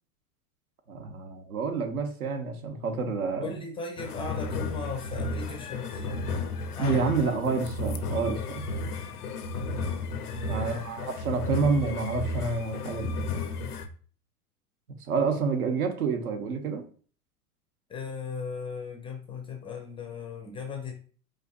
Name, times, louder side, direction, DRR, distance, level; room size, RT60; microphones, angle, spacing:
voice 1, 0.9-3.6 6.8-8.6 10.5-13.2 15.1-16.8, right 4 dB, 75° right, 5 dB, 0.9 m, -28 dB
voice 2, 3.4-6.2 6.7-7.0 10.1-10.7 17.9-20.9, left 5 dB, 15° left, 2 dB, 0.4 m, -37 dB
sound 1, 4.0-13.9, left 3 dB, 90° left, 0.6 m, -33 dB
4.4 x 2.6 x 2.3 m, 0.42 s
hypercardioid pair, 95°, 44 cm